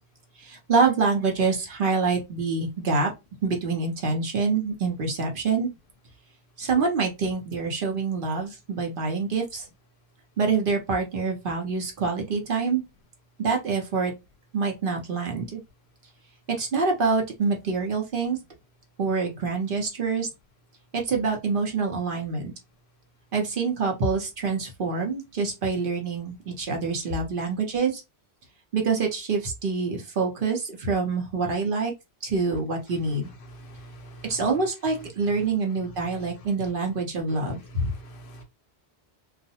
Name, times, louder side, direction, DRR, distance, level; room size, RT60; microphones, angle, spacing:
voice 1, 0.4-3.1 3.4-5.7 6.6-9.6 10.4-12.8 13.4-14.1 14.5-15.6 16.6-18.4 19.0-20.3 20.9-22.5 23.3-28.0 28.7-31.9 32.2-33.3 34.2-37.9, right 4 dB, 60° right, 0.9 m, -26 dB
voice 2, 33.4-34.5 35.3-35.5 35.9-36.3 37.3-38.4, right 1 dB, 65° left, 0.7 m, -45 dB
2.4 x 2.1 x 2.7 m
omnidirectional pair, 1.1 m